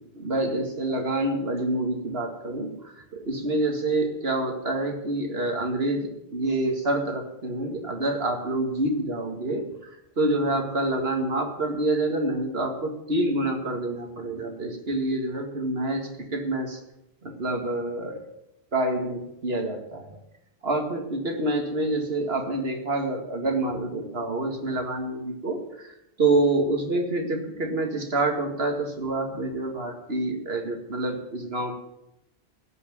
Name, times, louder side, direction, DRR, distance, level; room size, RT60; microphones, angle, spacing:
voice 1, 0.1-9.7 10.2-16.8 17.2-18.2 18.7-20.2 20.6-31.8, right 2 dB, 75° right, 3 dB, 2.4 m, -27 dB
16.5 x 6.1 x 9.2 m, 0.85 s
omnidirectional pair, 1.0 m